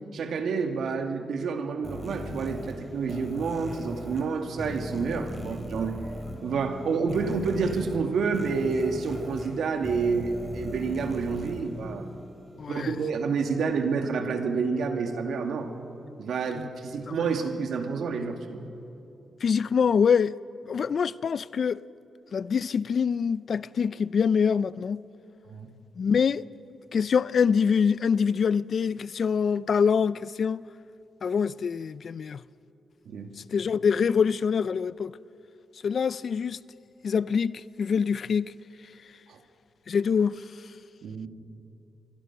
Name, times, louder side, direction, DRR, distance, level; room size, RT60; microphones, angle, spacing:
voice 1, 0.1-6.0 6.4-12.1 12.7-15.7 16.2-18.6 25.5-25.7 33.1-33.3 39.3-39.4 41.0-41.3, right 5 dB, 80° right, 2.2 m, -29 dB
sound 1, 1.8-12.6, equal, 5° left, 5.5 m, -39 dB
voice 2, 12.6-13.0 16.6-16.7 17.1-17.2 19.4-20.3 20.7-21.8 22.3-25.0 26.0-26.4 26.9-30.6 31.2-32.4 33.5-35.2 35.8-36.6 37.0-38.5 39.9-40.4, left 6 dB, 60° left, 0.5 m, -25 dB
27.5 x 24.0 x 6.1 m
cardioid pair, 95°, 0 cm